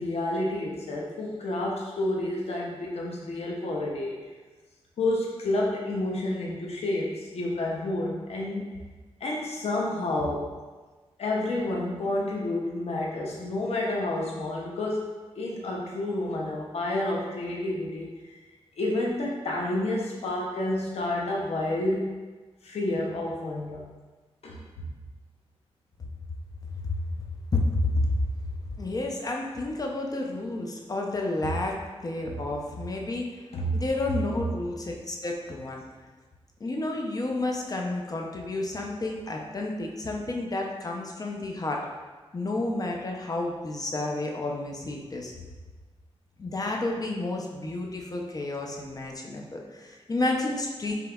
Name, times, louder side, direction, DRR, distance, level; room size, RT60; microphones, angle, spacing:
voice 1, 0.0-4.1 5.0-8.7 9.2-10.5 11.2-15.1 15.4-18.1 18.8-22.1 22.6-23.8 24.4-24.9 32.2-32.4 33.5-33.8, left 1 dB, 80° left, -2 dB, 0.6 m, -29 dB
voice 2, 26.8-27.2 27.5-28.1 28.8-33.3 33.7-35.8 36.6-41.8 42.3-45.3 46.4-50.9, left 2 dB, 35° left, 0 dB, 0.5 m, -30 dB
5.2 x 3.3 x 2.3 m, 1.3 s
wide cardioid pair, 120°, 11 cm